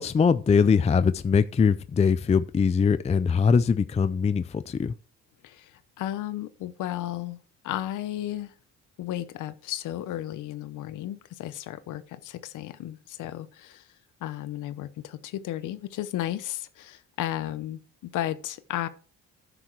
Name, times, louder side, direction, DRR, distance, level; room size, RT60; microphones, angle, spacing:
voice 1, 0.0-4.9, left 6 dB, 20° left, 0.4 m, -22 dB
voice 2, 5.4-7.4 7.6-8.5 9.0-13.9 14.2-17.8 18.1-18.9, left 13 dB, 85° left, 0.8 m, -34 dB
9.8 x 7.1 x 4.6 m
cardioid pair, 90°, 30 cm